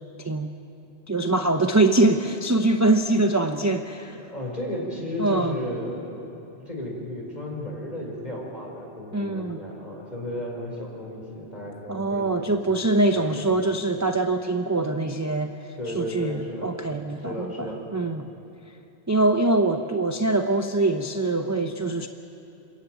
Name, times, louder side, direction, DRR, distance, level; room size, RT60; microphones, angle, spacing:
voice 1, 1.1-4.2 5.2-5.6 9.1-9.6 11.9-18.3 19.1-22.1, right 2 dB, 20° right, 6 dB, 0.5 m, -23 dB
voice 2, 4.1-6.4 6.6-12.8 13.1-13.5 15.8-16.7 17.2-17.9, left 1 dB, 35° left, -1 dB, 4.8 m, -34 dB
27.5 x 14.0 x 9.2 m, 2.9 s
omnidirectional pair, 1.2 m